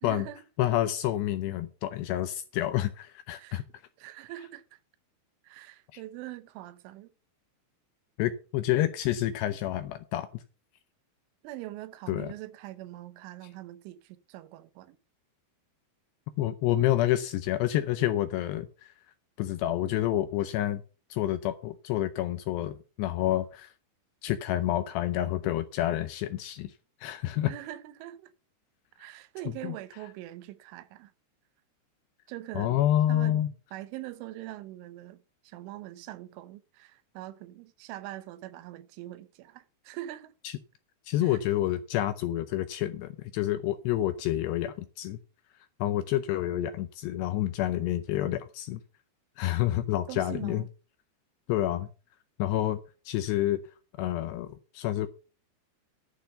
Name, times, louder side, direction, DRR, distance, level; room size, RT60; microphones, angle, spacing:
voice 1, 0.0-0.4 3.4-3.6 4.0-4.8 5.4-7.1 11.4-15.0 27.5-28.3 29.0-31.1 32.3-32.8 33.1-33.4 33.7-35.2 35.4-40.3 41.2-41.4 50.1-50.7, right 15 dB, 85° right, 3.3 m, -43 dB
voice 2, 0.6-3.6 5.9-6.0 8.2-10.4 12.1-12.3 16.4-18.9 19.4-20.8 21.1-23.7 24.2-26.7 27.0-27.5 29.6-29.7 32.6-33.5 40.4-40.6 41.1-45.2 45.8-48.8 49.4-50.6 51.5-51.9 52.4-52.8 53.1-53.6 54.0-55.1, left 13 dB, 80° left, 2.5 m, -28 dB
11.5 x 6.5 x 5.7 m
omnidirectional pair, 5.5 m